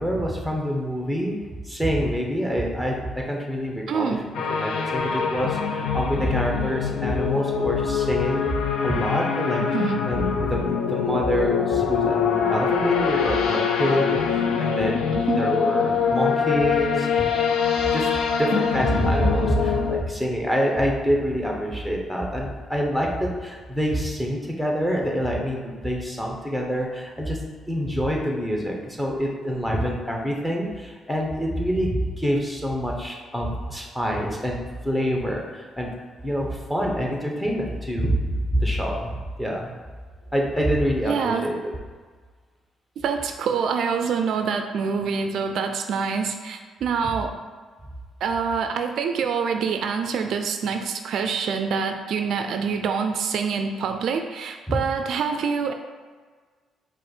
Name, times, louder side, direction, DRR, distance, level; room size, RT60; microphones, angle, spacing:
voice 1, 0.0-1.4 1.6-4.2 4.6-8.5 8.8-9.6 10.1-17.4 17.9-18.1 18.4-27.4 27.7-35.9 36.2-39.1 39.4-39.7 40.3-41.5 47.0-47.1 54.7-54.8, equal, 5° left, -1 dB, 0.9 m, -26 dB
voice 2, 3.9-4.2 9.6-10.0 15.1-15.4 41.0-41.5 43.0-47.4 48.2-55.7, right 6 dB, 70° right, 6 dB, 0.3 m, -26 dB
sound 1, 4.3-20.0, left 6 dB, 85° left, 0.5 m, -24 dB
4.9 x 2.4 x 4.4 m, 1.5 s
cardioid pair, 90°, 0 cm